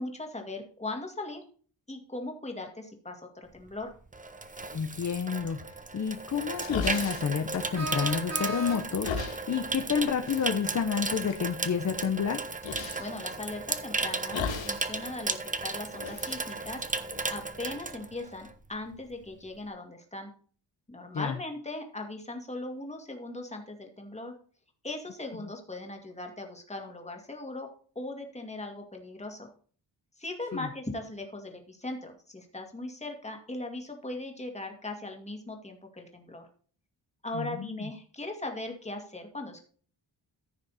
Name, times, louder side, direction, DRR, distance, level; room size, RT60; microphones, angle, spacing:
voice 1, 0.0-1.4 1.9-3.9 12.7-15.4 15.6-16.8 17.3-20.3 20.9-24.3 24.8-27.7 28.0-29.5 30.2-36.5 37.2-39.6, left 2 dB, 15° left, 3 dB, 2.3 m, -39 dB
Water tap faucet / Sink (filling or washing), 3.6-18.7 18.9-19.2, right 3 dB, 20° right, 0.9 m, -35 dB
voice 2, 4.7-12.4 21.1-21.4 30.5-30.7 37.3-37.9, left 6 dB, 40° left, 8 dB, 0.8 m, -30 dB
sound 1, 6.3-8.2 8.5-9.4 10.3-10.4 11.0-11.4 12.6-13.1 14.3-14.9 15.2-15.3 16.0-17.5, left 5 dB, 90° left, 1.9 m, -36 dB
air horn close and loud, 7.7-9.2, right 1 dB, 35° right, 2.8 m, -35 dB
14.5 x 6.4 x 4.2 m, 0.43 s
wide cardioid pair, 150°, 44 cm